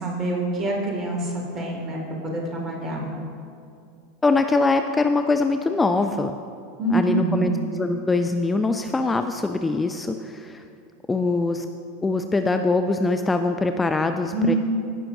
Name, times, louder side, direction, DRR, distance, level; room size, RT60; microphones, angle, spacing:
voice 1, 0.0-2.0 2.2-3.0 6.8-7.5 14.3-14.6, right 1 dB, 35° right, -1 dB, 2.1 m, -25 dB
voice 2, 4.2-6.3 6.9-10.6 11.1-11.7 12.0-14.5, left 3 dB, 15° left, 7 dB, 0.4 m, -23 dB
16.0 x 5.8 x 2.7 m, 2.5 s
figure-of-eight pair, 85°, 0 cm